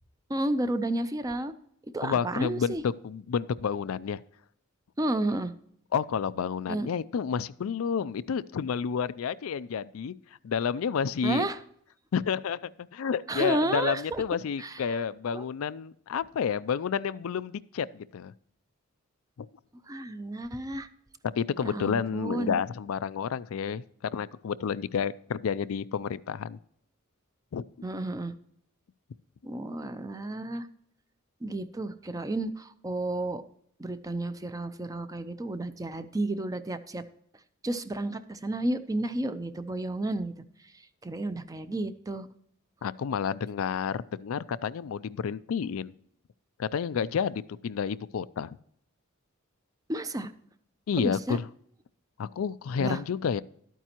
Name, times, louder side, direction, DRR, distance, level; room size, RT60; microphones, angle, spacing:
voice 1, 0.3-1.5 1.9-2.8 5.0-5.5 6.7-6.9 11.2-11.6 13.3-14.2 14.6-15.0 15.3-15.4 19.9-20.9 21.6-22.6 27.8-28.3 29.4-30.7 31.4-33.4 33.8-37.0 37.6-40.3 41.0-42.3 49.9-50.3 51.0-51.4 52.8-53.0, right 1 dB, 15° right, 11 dB, 0.5 m, -31 dB
voice 2, 2.0-4.2 5.9-10.1 10.4-11.4 12.1-18.3 19.4-19.5 21.3-23.8 24.1-26.6 27.5-27.6 42.8-45.9 46.6-48.6 50.9-51.4 52.2-53.4, left 6 dB, 80° left, 15 dB, 0.4 m, -30 dB
12.0 x 9.2 x 2.9 m, 0.67 s
head